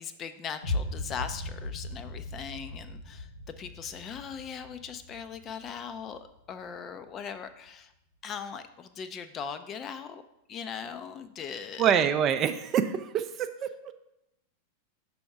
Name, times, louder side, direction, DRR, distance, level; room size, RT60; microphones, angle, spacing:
voice 1, 0.0-3.3 3.6-7.9 8.2-10.2 10.5-11.9, left 7 dB, 30° left, 10 dB, 0.4 m, -39 dB
sound 1, 0.6-6.6, left 2 dB, 75° left, 1.7 m, -38 dB
voice 2, 11.8-13.7, right 8 dB, 30° right, 9 dB, 0.4 m, -25 dB
6.0 x 3.5 x 5.7 m, 0.85 s
figure-of-eight pair, 90°, 0 cm